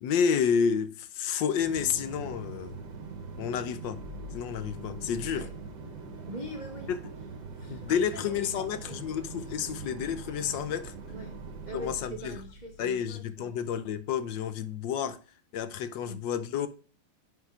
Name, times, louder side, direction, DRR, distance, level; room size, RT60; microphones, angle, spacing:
voice 1, 0.0-2.8 3.4-4.0 4.3-5.5 6.9-7.0 7.7-10.9 11.7-12.4 12.8-15.2 15.5-16.7, left 7 dB, 70° left, 1.2 m, -30 dB
sound 1, 1.6-12.0, right 4 dB, 60° right, 1.4 m, -42 dB
sound 2, 3.8-13.6, left 1 dB, 45° right, 1.5 m, -50 dB
voice 2, 6.2-6.9 7.5-9.0 11.1-11.4 11.6-13.5 16.0-16.2, right 1 dB, 85° right, 0.4 m, -43 dB
9.5 x 6.2 x 2.4 m
omnidirectional pair, 2.3 m